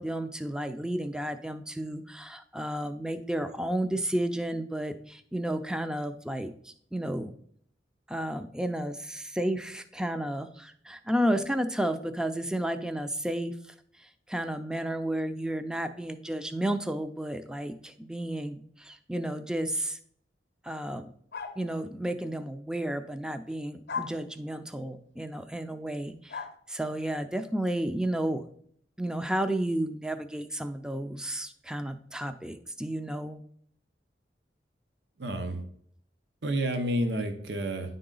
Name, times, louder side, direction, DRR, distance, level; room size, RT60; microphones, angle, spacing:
voice 1, 0.0-7.3 8.1-13.5 14.0-20.0 20.6-21.1 21.6-26.4 26.7-28.4 29.0-33.4, right 1 dB, 5° right, 9 dB, 0.4 m, -32 dB
sound 1, 21.3-21.7 23.9-24.2 26.3-26.6, left 5 dB, 65° left, 0.7 m, -35 dB
voice 2, 35.2-35.6 36.4-38.0, right 1 dB, 80° right, 7 dB, 0.8 m, -30 dB
9.9 x 3.9 x 3.8 m, 0.64 s
head